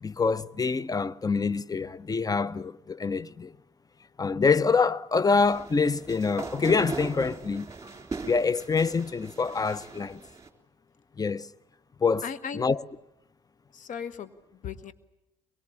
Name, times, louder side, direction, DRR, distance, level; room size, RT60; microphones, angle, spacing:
voice 1, 0.0-3.5 4.2-7.7 8.3-10.2 11.2-11.5 12.0-12.2 12.5-12.8, left 4 dB, 25° left, 0.8 m, -25 dB
sound 1, 5.4-10.5, right 4 dB, 20° right, 3.5 m, -40 dB
voice 2, 12.2-12.7 13.7-14.9, left 7 dB, 55° left, 1.6 m, -37 dB
23.5 x 23.0 x 8.6 m
hypercardioid pair, 55°, 16 cm